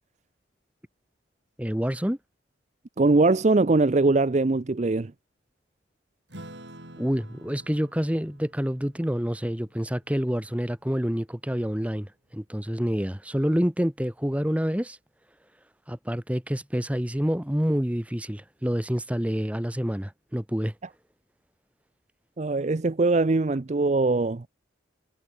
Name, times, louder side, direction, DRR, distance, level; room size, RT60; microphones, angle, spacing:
voice 1, 1.6-2.2 7.0-15.0 15.9-20.7, equal, 5° right, 1.1 m, -27 dB
voice 2, 3.0-5.1 22.4-24.5, right 3 dB, 35° right, 0.5 m, -22 dB
Acoustic guitar / Strum, 6.3-11.1, right 1 dB, 65° right, 7.2 m, -49 dB
head